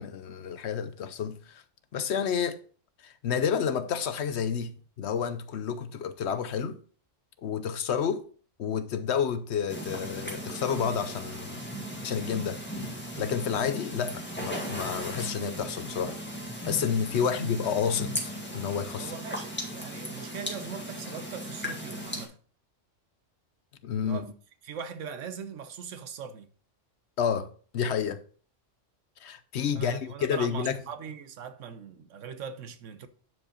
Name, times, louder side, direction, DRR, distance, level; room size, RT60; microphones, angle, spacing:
voice 1, 0.0-1.6 1.9-2.6 3.0-6.8 7.4-8.2 8.6-11.6 12.0-12.6 13.2-16.2 16.6-19.2 23.8-24.3 27.2-27.5 27.7-28.2 29.2-30.8, left 7 dB, 65° left, 0.9 m, -30 dB
sound 1, 9.7-22.3, equal, 10° left, 1.8 m, -37 dB
voice 2, 19.0-22.4 24.0-24.3 24.6-26.5 29.7-33.1, right 7 dB, 80° right, 1.2 m, -40 dB
9.5 x 5.1 x 4.1 m
omnidirectional pair, 1.3 m